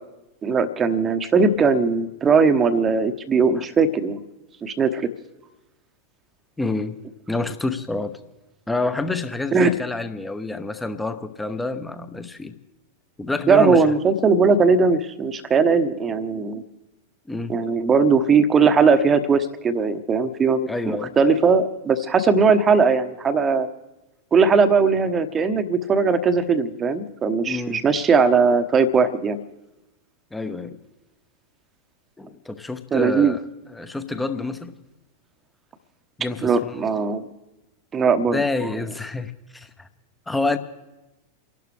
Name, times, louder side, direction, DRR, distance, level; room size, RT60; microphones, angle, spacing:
voice 1, 0.4-4.2 4.6-5.1 9.5-9.7 13.5-16.6 17.5-23.7 24.3-29.4 32.9-33.3 36.4-37.2 37.9-38.4, right 5 dB, 20° right, 10 dB, 1.1 m, -19 dB
voice 2, 6.6-7.0 7.3-8.2 8.7-12.6 13.2-13.8 17.3-17.5 20.7-21.1 27.5-27.8 30.3-30.8 32.2-33.4 33.7-34.7 36.2-36.7 38.3-39.9 40.3-40.6, left 3 dB, 5° left, 10 dB, 1.0 m, -28 dB
29.5 x 11.5 x 3.4 m, 1.0 s
figure-of-eight pair, 90°, 0 cm